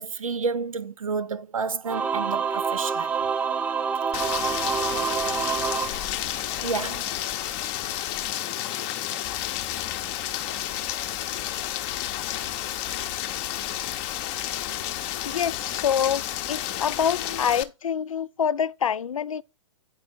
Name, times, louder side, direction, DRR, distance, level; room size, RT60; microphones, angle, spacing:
voice 1, 0.0-3.2 6.6-7.1, right 4 dB, 80° right, 0.7 m, -30 dB
Singing / Musical instrument, 1.9-6.7, right 6 dB, 10° right, 0.3 m, -27 dB
Rain, 4.1-17.6, left 12 dB, 30° left, 0.7 m, -31 dB
voice 2, 15.2-16.2 16.5-19.4, left 8 dB, 75° left, 0.4 m, -26 dB
8.5 x 4.6 x 4.3 m
figure-of-eight pair, 120°, 17 cm